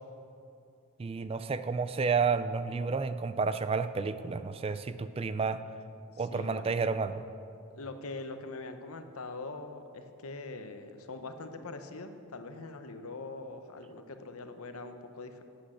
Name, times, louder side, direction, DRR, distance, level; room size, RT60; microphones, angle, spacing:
voice 1, 1.0-5.6 6.2-7.2, right 5 dB, 25° right, 12 dB, 0.3 m, -31 dB
voice 2, 6.1-6.7 7.7-15.4, left 3 dB, 75° left, 8 dB, 0.9 m, -43 dB
11.5 x 8.6 x 6.4 m, 2.5 s
head